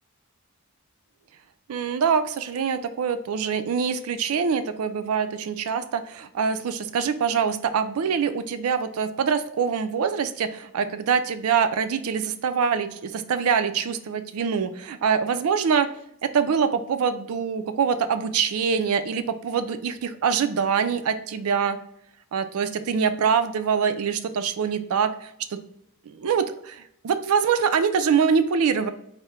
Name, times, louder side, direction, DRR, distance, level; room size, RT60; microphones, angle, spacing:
voice 1, 1.7-15.9 16.3-21.8 22.3-25.6 26.1-28.9, right 6 dB, 85° right, 11 dB, 0.4 m, -24 dB
4.2 x 2.1 x 3.5 m, 0.73 s
head